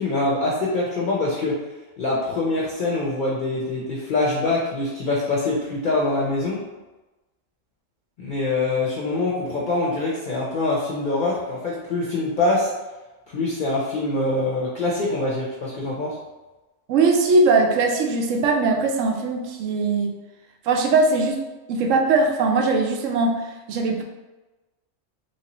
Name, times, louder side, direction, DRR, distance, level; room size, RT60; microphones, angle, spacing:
voice 1, 0.0-1.6 2.0-6.6 8.2-12.7 13.3-16.2, left 2 dB, 55° left, -4 dB, 0.6 m, -24 dB
voice 2, 16.9-20.1 20.7-21.4 21.7-24.0, right 3 dB, 85° right, 3 dB, 0.9 m, -20 dB
3.1 x 2.8 x 2.9 m, 1.1 s
omnidirectional pair, 1.3 m